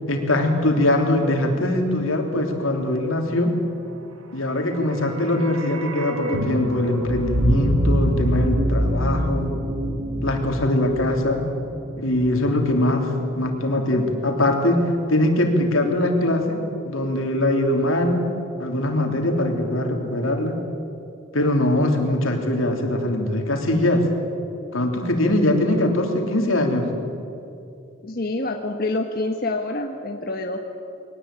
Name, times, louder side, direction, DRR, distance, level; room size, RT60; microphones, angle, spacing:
voice 1, 0.1-3.6 4.3-9.5 10.2-11.5 12.0-18.3 18.6-20.6 21.3-24.1 24.7-26.9, left 1 dB, 80° left, 3 dB, 3.3 m, -22 dB
sound 1, 4.6-12.8 13.0-13.1, equal, 90° right, 2.1 m, -25 dB
voice 2, 28.0-30.6, left 2 dB, 45° left, 3 dB, 1.3 m, -27 dB
22.0 x 18.5 x 9.0 m, 2.7 s
head